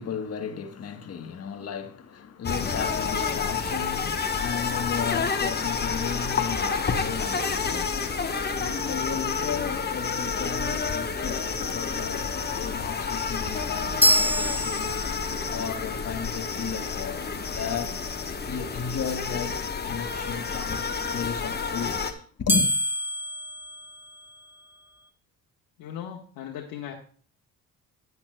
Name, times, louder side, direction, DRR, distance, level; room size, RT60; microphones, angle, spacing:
voice 1, 0.0-15.0 15.5-17.3 17.5-18.0 18.3-19.6 19.8-22.7, left 7 dB, 50° left, 1.3 m, -34 dB
sound 1, 2.4-22.1, left 5 dB, 30° left, 1.1 m, -29 dB
sound 2, 7.4-8.7 14.0-15.5 22.5-24.6, equal, 5° right, 1.0 m, -27 dB
voice 2, 25.8-26.9, left 9 dB, 80° left, 1.4 m, -37 dB
10.5 x 9.4 x 2.3 m
cardioid pair, 85°, 33 cm